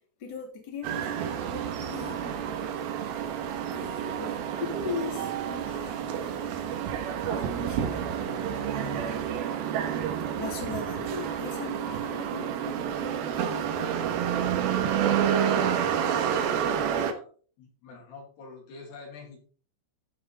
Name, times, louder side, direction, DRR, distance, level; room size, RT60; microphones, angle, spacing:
voice 1, 0.2-2.7 3.7-9.2 10.4-14.0, left 5 dB, 25° left, -2 dB, 2.9 m, -40 dB
sound 1, 0.8-17.1, right 8 dB, 75° right, 2.3 m, -29 dB
voice 2, 14.6-17.3 17.6-19.4, left 3 dB, 60° left, -1 dB, 4.2 m, -47 dB
14.5 x 5.6 x 4.1 m, 0.42 s
omnidirectional pair, 5.9 m